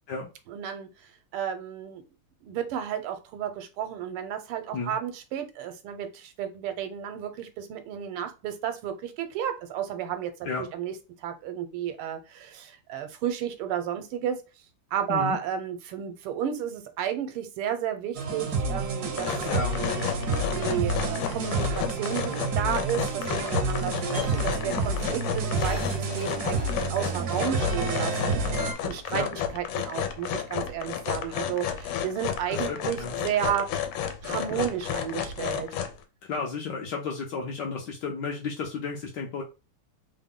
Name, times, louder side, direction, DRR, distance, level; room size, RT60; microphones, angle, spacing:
voice 1, 0.5-0.9 1.3-2.0 2.4-10.3 10.7-10.9 11.2-14.4 14.9-19.3 20.4-33.7 34.2-35.7, right 9 dB, 80° right, 8 dB, 1.5 m, -32 dB
sound 1, 18.2-28.7, right 3 dB, 65° right, 1.0 m, -29 dB
sound 2, 19.0-36.0, left 8 dB, 90° left, 1.5 m, -32 dB
voice 2, 19.5-19.8 29.1-29.3 32.5-33.2 34.5-34.7 36.2-39.4, left 5 dB, 70° left, 0 dB, 1.1 m, -33 dB
sound 3, 24.1-24.4 25.5-27.2 28.4-28.5 28.8-28.9, left 2 dB, 55° left, 0.8 m, -43 dB
3.6 x 2.1 x 3.6 m, 0.29 s
omnidirectional pair, 2.4 m